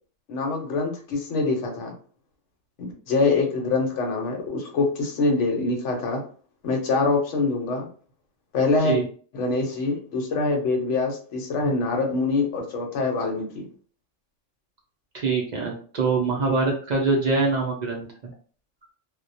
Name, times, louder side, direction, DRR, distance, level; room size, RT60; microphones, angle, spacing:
voice 1, 0.3-1.9 2.8-6.2 6.6-7.9 8.5-9.0 9.3-13.7, left 3 dB, 75° left, 2 dB, 1.0 m, -24 dB
voice 2, 15.1-18.1, right 3 dB, 55° right, -1 dB, 0.4 m, -24 dB
2.3 x 2.1 x 2.6 m, 0.43 s
omnidirectional pair, 1.3 m